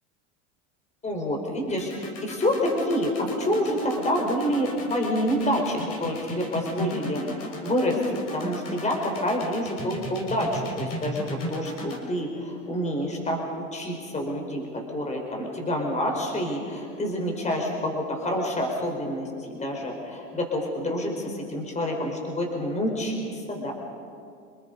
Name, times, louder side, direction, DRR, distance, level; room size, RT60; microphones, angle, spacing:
voice 1, 1.0-23.7, equal, 20° left, 1 dB, 4.8 m, -28 dB
sound 1, 1.7-12.0, equal, 40° left, 6.3 m, -35 dB
29.0 x 20.0 x 5.5 m, 2.3 s
hypercardioid pair, 95°, 37 cm